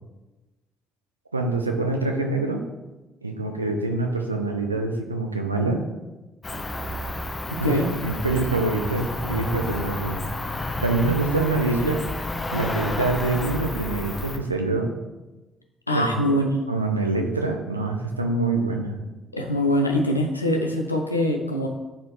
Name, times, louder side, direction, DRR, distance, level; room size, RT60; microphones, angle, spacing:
voice 1, 1.3-2.6 3.2-5.8 7.6-10.2 10.8-12.0 12.5-14.9 15.9-16.3 16.7-19.0, right 3 dB, 85° right, 3 dB, 0.5 m, -25 dB
Cricket, 6.4-14.4, left 2 dB, 25° left, 0.8 m, -31 dB
voice 2, 15.9-16.6 19.3-21.7, left 1 dB, 85° left, 2 dB, 0.6 m, -23 dB
10.0 x 4.3 x 3.1 m, 1.1 s
figure-of-eight pair, 45°, 0 cm